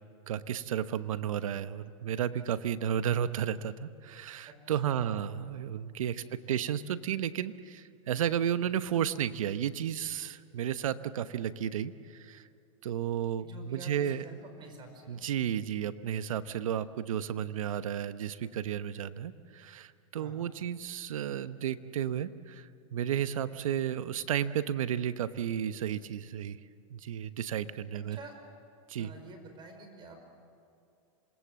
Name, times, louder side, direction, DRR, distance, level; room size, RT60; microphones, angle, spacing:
voice 1, 0.3-12.5 12.8-14.2 15.1-26.6 26.9-28.2 28.9-29.1, right 9 dB, 80° right, 13 dB, 1.0 m, -33 dB
voice 2, 4.5-5.2 6.2-6.6 13.4-15.2 20.2-20.4 28.1-28.4 29.0-30.2, right 2 dB, 25° right, 5 dB, 4.9 m, -49 dB
27.0 x 20.5 x 7.5 m, 2.5 s
hypercardioid pair, 130°, 17 cm